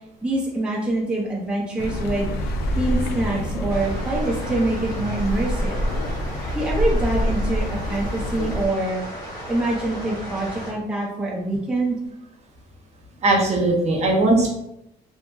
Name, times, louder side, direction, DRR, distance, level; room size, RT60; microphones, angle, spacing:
voice 1, 0.2-5.8 6.5-9.0 9.5-12.0, right 2 dB, 5° right, -4 dB, 0.5 m, -25 dB
Accelerating revving vroom, 1.8-8.7, equal, 75° left, 0.5 m, -26 dB
sound 1, 3.7-10.7, equal, 50° left, 1.3 m, -35 dB
voice 2, 13.2-14.5, right 2 dB, 40° right, -1 dB, 0.8 m, -19 dB
2.8 x 2.5 x 2.4 m, 0.82 s
cardioid pair, 110°, 17 cm